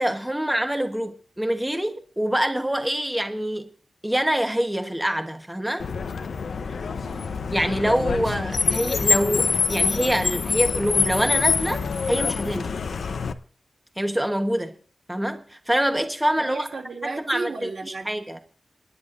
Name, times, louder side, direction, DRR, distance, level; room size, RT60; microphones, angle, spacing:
voice 1, 0.0-3.7 4.0-5.8 7.5-12.7 14.0-14.7 15.1-16.6 17.3-17.7 18.1-18.4, equal, 5° right, 1.1 m, -25 dB
Car, 5.8-13.3, left 5 dB, 85° left, 0.7 m, -25 dB
voice 2, 7.0-7.5 16.4-18.1, right 4 dB, 85° right, 2.6 m, -34 dB
27.5 x 10.5 x 2.6 m
wide cardioid pair, 125°, 0 cm